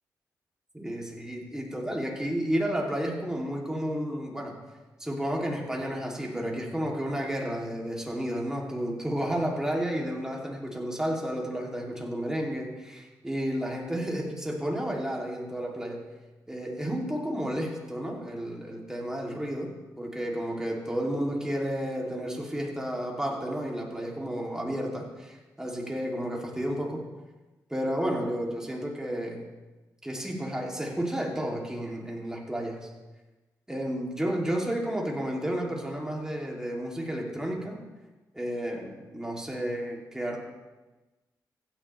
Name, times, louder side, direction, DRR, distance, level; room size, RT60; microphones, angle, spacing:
voice 1, 0.7-4.6 5.0-16.1 16.5-27.0 27.7-29.4 30.0-32.9 33.7-37.8 38.3-40.4, equal, 10° right, -1 dB, 2.9 m, -32 dB
16.0 x 10.0 x 3.4 m, 1.2 s
cardioid pair, 65°, 7 cm